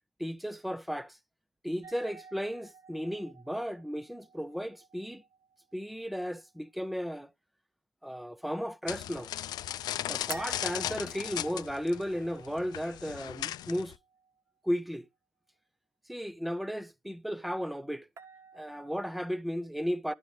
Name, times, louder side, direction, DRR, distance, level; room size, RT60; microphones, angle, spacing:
voice 1, 0.2-1.2 1.6-5.2 5.7-7.3 8.0-9.3 10.1-13.9 14.6-15.1 16.1-18.1 18.5-20.1, equal, ahead, 0.5 m, -35 dB
sound 1, 1.8-6.8 10.3-14.4 18.2-19.4, right 4 dB, 40° right, 1.5 m, -51 dB
sound 2, 8.9-14.0, left 12 dB, 60° left, 0.4 m, -37 dB
11.5 x 5.3 x 3.2 m
cardioid pair, 110°, 8 cm